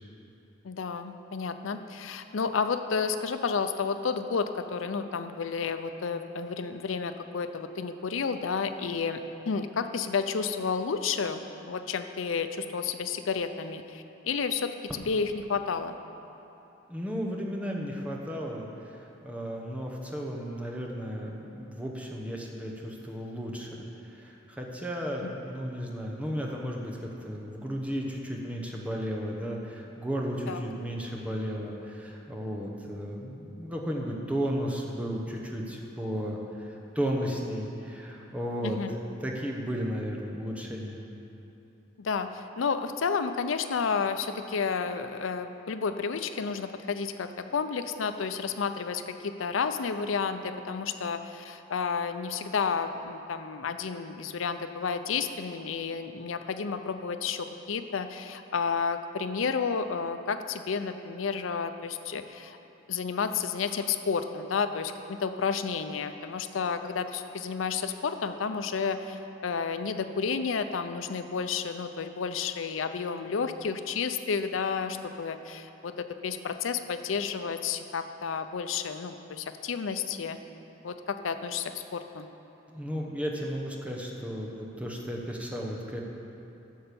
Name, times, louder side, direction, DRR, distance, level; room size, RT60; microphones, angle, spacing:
voice 1, 0.6-9.2 9.5-11.4 11.7-16.0 25.2-25.3 30.5-30.6 38.6-38.9 42.0-62.6 62.9-80.4 80.8-82.3, left 5 dB, 90° left, 9 dB, 0.5 m, -31 dB
voice 2, 16.9-41.0 82.7-86.0, equal, 5° right, -1 dB, 1.0 m, -34 dB
10.0 x 6.6 x 6.9 m, 2.9 s
head